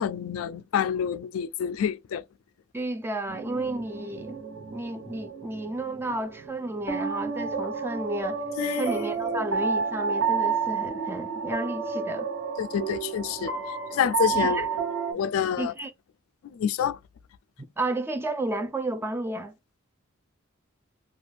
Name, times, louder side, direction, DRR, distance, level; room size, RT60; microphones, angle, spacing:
voice 1, 0.0-2.2 8.6-8.9 9.2-9.4 12.6-13.5 13.9-14.6 15.1-15.7 16.5-17.0, left 8 dB, 80° left, 0.3 m, -27 dB
voice 2, 2.7-4.4 4.7-8.4 8.7-12.3 14.3-14.7 15.6-15.9 17.8-19.6, right 2 dB, 10° right, 0.3 m, -32 dB
sound 1, 3.3-15.1, right 5 dB, 70° right, 1.0 m, -30 dB
2.5 x 2.3 x 3.2 m
head